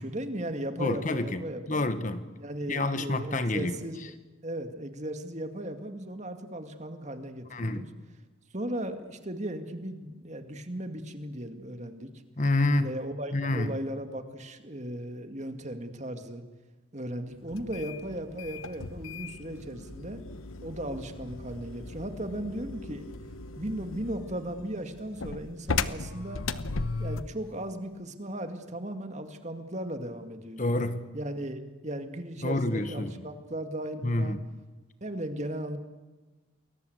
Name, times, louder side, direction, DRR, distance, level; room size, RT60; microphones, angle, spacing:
voice 1, 0.0-1.8 2.4-4.2 4.4-7.9 8.5-12.1 12.8-16.4 16.9-20.2 20.6-23.1 23.6-26.4 27.0-30.6 31.1-34.4 35.0-35.8, right 1 dB, 35° right, 2.2 m, -36 dB
voice 2, 0.8-2.2 2.7-3.7 7.5-7.8 12.4-12.9 13.3-13.7 30.6-31.0 32.4-33.1 34.0-34.4, left 2 dB, 40° left, 1.3 m, -28 dB
sound 1, 17.5-27.4, left 4 dB, 85° left, 1.1 m, -37 dB
29.5 x 21.5 x 8.1 m
head